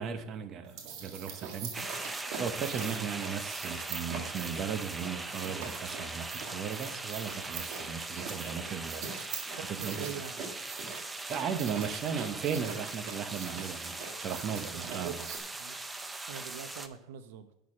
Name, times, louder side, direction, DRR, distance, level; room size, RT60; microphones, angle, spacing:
voice 1, 0.0-1.9 2.4-9.1 9.6-10.2 11.3-15.3, right 7 dB, 45° right, 0.9 m, -36 dB
sound 1, 0.6-15.4, right 6 dB, 60° right, 1.9 m, -43 dB
sound 2, 1.7-16.9, right 2 dB, 10° right, 0.6 m, -40 dB
voice 2, 9.6-10.3 14.5-15.2 15.6-15.8 16.3-17.5, right 9 dB, 85° right, 0.8 m, -43 dB
9.2 x 6.5 x 5.1 m
supercardioid pair, 120°, 0 cm